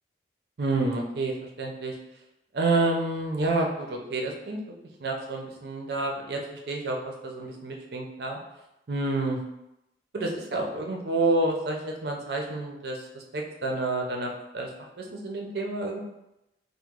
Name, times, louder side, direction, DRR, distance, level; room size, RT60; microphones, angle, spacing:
voice 1, 0.6-1.9 2.5-4.6 5.0-6.4 6.7-8.4 8.9-9.4 10.1-14.7 15.0-16.0, right 2 dB, 60° right, 0 dB, 0.5 m, -29 dB
3.0 x 2.1 x 3.5 m, 0.89 s
head